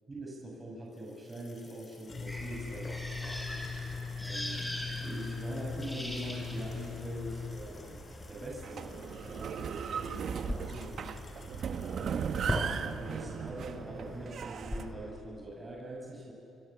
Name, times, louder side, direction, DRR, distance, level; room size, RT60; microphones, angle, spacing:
voice 1, 0.1-3.4 4.2-8.0 8.2-11.2 11.9-12.4 13.0-16.3, right 1 dB, 25° right, -2 dB, 6.5 m, -43 dB
sound 1, 1.0-13.0, left 5 dB, 40° left, 3.7 m, -43 dB
sound 2, 2.3-15.1, equal, 10° left, 6.2 m, -41 dB
sound 3, 8.6-14.9, right 7 dB, 60° right, 1.1 m, -37 dB
29.5 x 27.0 x 7.3 m, 2.5 s
cardioid pair, 90°, 0 cm